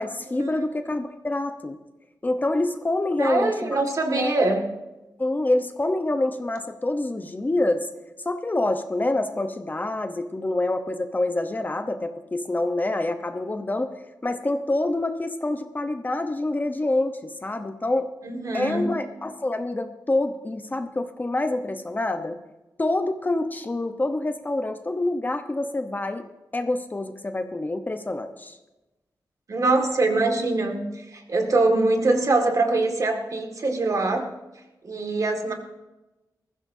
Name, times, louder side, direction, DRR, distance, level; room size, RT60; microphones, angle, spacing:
voice 1, 0.0-1.8 2.2-3.8 4.1-4.6 5.2-7.9 8.2-13.9 14.2-18.1 18.5-22.4 22.8-26.2 26.5-28.6, left 2 dB, 25° left, 7 dB, 0.9 m, -26 dB
voice 2, 3.2-4.7 18.2-19.0 29.5-34.3 34.8-35.5, right 2 dB, 50° right, 4 dB, 2.0 m, -23 dB
20.0 x 15.0 x 2.7 m, 1.0 s
wide cardioid pair, 95°, 7 cm